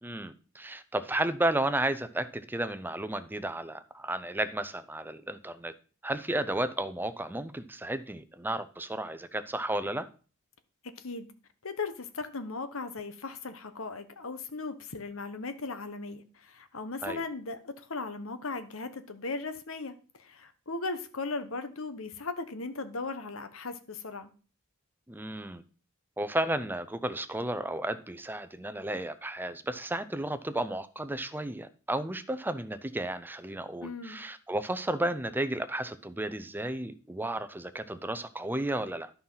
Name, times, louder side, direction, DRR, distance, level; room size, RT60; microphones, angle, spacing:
voice 1, 0.0-5.7 6.0-10.1 17.0-17.2 25.1-25.6 26.2-39.1, right 1 dB, 10° right, 0.6 m, -33 dB
voice 2, 11.0-11.3 11.6-19.9 20.2-24.3 33.8-34.2, left 3 dB, 65° left, 1.1 m, -37 dB
11.0 x 5.7 x 5.7 m
head